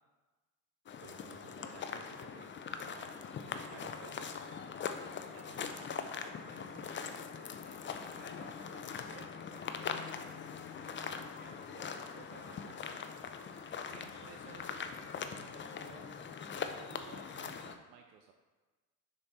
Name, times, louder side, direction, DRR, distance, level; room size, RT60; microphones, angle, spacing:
sound 1, 0.9-17.8, left 6 dB, 25° left, 0.5 m, -42 dB
voice 1, 1.0-2.5 3.5-4.7 5.6-5.7 6.7-6.9 9.8-10.1 10.4-10.5, right 6 dB, 55° right, 5 dB, 1.0 m, -55 dB
voice 2, 2.8-4.2 5.2-10.0 11.4-13.1 13.9-16.3 16.9-18.3, right 7 dB, 85° right, 4 dB, 0.6 m, -57 dB
sound 2, 9.9-15.9, left 4 dB, 60° left, 1.1 m, -63 dB
6.4 x 4.4 x 4.2 m, 1.3 s
hypercardioid pair, 55°, 48 cm